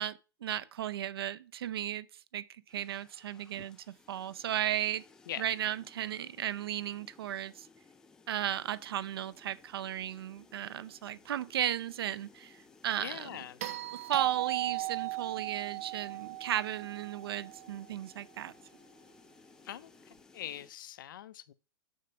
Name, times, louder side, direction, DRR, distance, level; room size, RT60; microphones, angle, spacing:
voice 1, 0.0-2.1 2.3-3.8 4.1-5.0 5.4-7.7 8.3-13.4 13.9-18.5, right 11 dB, 85° right, 0.6 m, -35 dB
sound 1, 2.7-20.7, left 4 dB, 5° left, 0.3 m, -60 dB
voice 2, 13.0-13.6 19.6-19.9 20.3-21.5, left 12 dB, 60° left, 0.6 m, -42 dB
sound 2, 13.6-17.9 20.1-20.2, right 20 dB, 40° right, 0.6 m, -37 dB
6.5 x 5.0 x 5.8 m
supercardioid pair, 175°, 12 cm